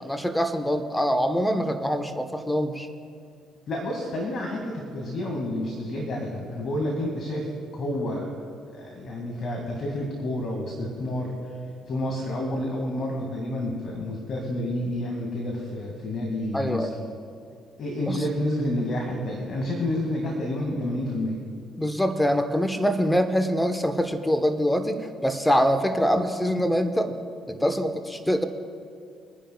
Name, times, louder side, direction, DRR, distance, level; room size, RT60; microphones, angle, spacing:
voice 1, 0.0-2.9 16.5-16.9 18.1-18.2 21.8-27.1 27.5-28.4, equal, 5° left, 8 dB, 1.1 m, -24 dB
voice 2, 3.7-7.5 7.7-8.3 8.7-11.6 11.9-16.9 17.8-21.4, left 1 dB, 50° left, 0 dB, 2.2 m, -29 dB
25.0 x 10.0 x 2.4 m, 2.4 s
hypercardioid pair, 50°, 0 cm